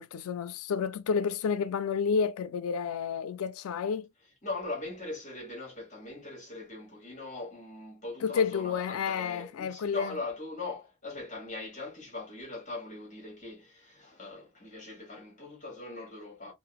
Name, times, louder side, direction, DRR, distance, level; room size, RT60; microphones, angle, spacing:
voice 1, 0.0-4.1 8.2-10.2, left 6 dB, 80° left, 0.4 m, -30 dB
voice 2, 4.4-16.5, left 2 dB, 35° left, 1.4 m, -40 dB
3.8 x 2.0 x 2.3 m
head